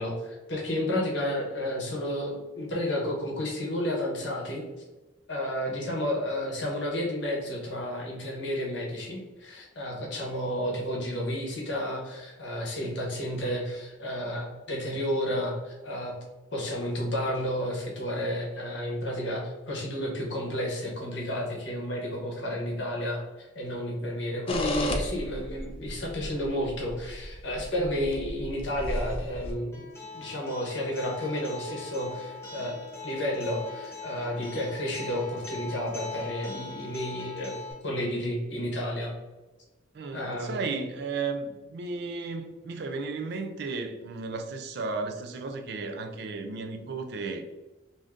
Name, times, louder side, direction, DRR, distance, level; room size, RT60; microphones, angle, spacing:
voice 1, 0.0-4.6 5.3-16.2 16.5-29.8 30.1-32.8 33.0-37.6 37.8-39.1 40.1-40.8, equal, 65° left, -1 dB, 0.9 m, -31 dB
sound 1, 24.5-29.5, left 1 dB, 30° left, 0.3 m, -34 dB
Acoustic guitar, 29.7-37.7, left 4 dB, 15° left, 0.8 m, -41 dB
voice 2, 39.9-47.4, right 4 dB, 55° right, 5 dB, 0.3 m, -34 dB
2.6 x 2.5 x 3.4 m, 1.1 s
head